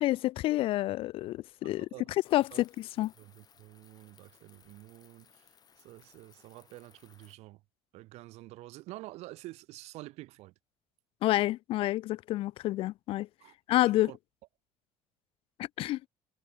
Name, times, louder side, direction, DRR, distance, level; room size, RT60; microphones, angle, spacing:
voice 1, 0.0-1.9 2.3-3.1 11.2-13.3 13.7-14.1 15.8-16.0, left 16 dB, 50° left, 0.4 m, -28 dB
voice 2, 1.6-2.1 2.5-2.6 3.2-5.5 5.8-7.6 7.9-10.5 13.4-13.5 13.9-14.2, right 19 dB, 65° right, 1.9 m, -48 dB
sound 1, 2.2-7.4, left 8 dB, 35° left, 5.2 m, -63 dB
cardioid pair, 140°, 12 cm